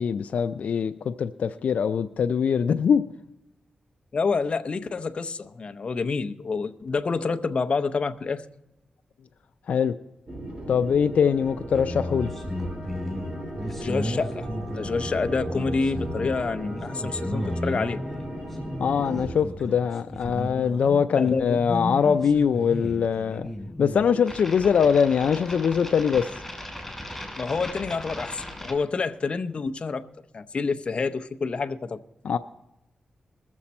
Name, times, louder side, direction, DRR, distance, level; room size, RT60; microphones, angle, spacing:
voice 1, 0.0-3.0 9.7-9.9 10.7-12.3 18.8-23.5 23.8-26.3 32.2-32.4, left 7 dB, 80° left, 0.4 m, -22 dB
voice 2, 4.1-8.4 13.8-18.0 21.1-21.6 27.4-30.0 30.3-32.0, left 4 dB, 50° left, 0.7 m, -28 dB
sound 1, 10.3-19.3, right 1 dB, 45° right, 3.0 m, -36 dB
sound 2, 11.7-28.7, equal, 5° left, 3.6 m, -34 dB
21.5 x 7.3 x 4.2 m
cardioid pair, 85°, 2 cm